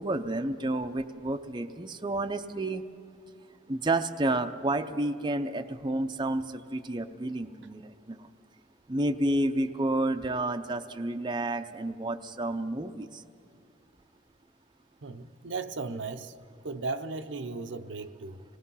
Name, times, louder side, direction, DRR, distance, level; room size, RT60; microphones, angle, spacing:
voice 1, 0.0-2.8 3.7-8.3 8.9-13.2, right 2 dB, 25° right, 0.6 m, -30 dB
voice 2, 15.0-16.3 16.6-18.4, right 3 dB, 80° right, 0.8 m, -36 dB
26.5 x 19.5 x 5.6 m
head